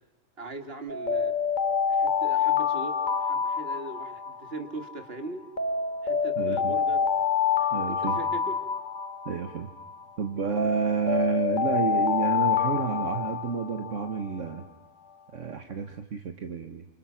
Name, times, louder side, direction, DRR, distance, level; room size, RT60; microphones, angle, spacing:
voice 1, 0.4-1.3 1.8-5.5 6.0-7.1 7.6-8.6, right 2 dB, 45° right, 7 dB, 2.5 m, -40 dB
Alarm, 0.9-5.0 5.6-10.0 10.6-14.4, left 6 dB, 35° left, 1.4 m, -27 dB
voice 2, 6.4-6.7 7.7-8.2 9.2-9.7 10.2-14.6 15.3-16.9, right 6 dB, 65° right, 7 dB, 1.7 m, -30 dB
29.5 x 27.5 x 5.9 m, 1.0 s
omnidirectional pair, 1.4 m